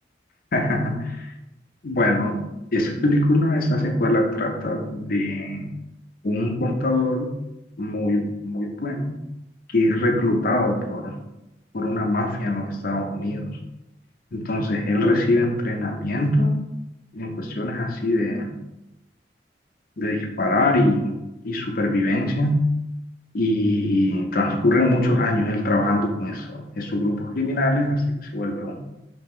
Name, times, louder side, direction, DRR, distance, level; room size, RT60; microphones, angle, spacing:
voice 1, 0.5-1.3 1.8-2.4 2.7-5.7 6.2-7.3 7.8-9.2 9.7-11.1 11.7-13.6 14.3-16.5 17.1-18.5 20.0-21.2 21.4-22.7 23.3-28.9, left 1 dB, 50° left, 3 dB, 0.7 m, -23 dB
3.6 x 2.9 x 4.3 m, 0.92 s
head